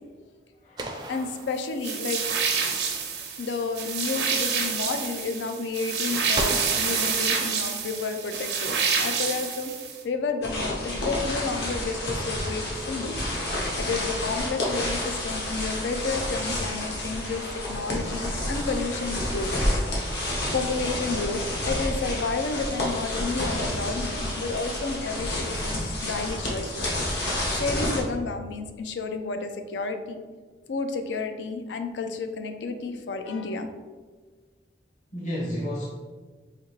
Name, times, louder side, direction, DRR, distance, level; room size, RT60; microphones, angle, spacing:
sound 1, 0.8-2.2 6.3-7.9, right 2 dB, 25° right, 0.4 m, -35 dB
voice 1, 1.1-2.2 3.4-9.7 10.0-13.2 13.8-19.5 20.5-26.8 27.6-30.2 30.7-33.7, left 4 dB, 90° left, 7 dB, 0.4 m, -31 dB
sound 2, 1.8-10.0, right 6 dB, 75° right, 0.6 m, -28 dB
voice 2, 3.1-3.4 35.1-35.8, equal, 45° left, -6 dB, 0.8 m, -32 dB
sound 3, 10.4-28.0, left 1 dB, 75° left, 1.1 m, -29 dB
5.0 x 2.8 x 2.9 m, 1.4 s
head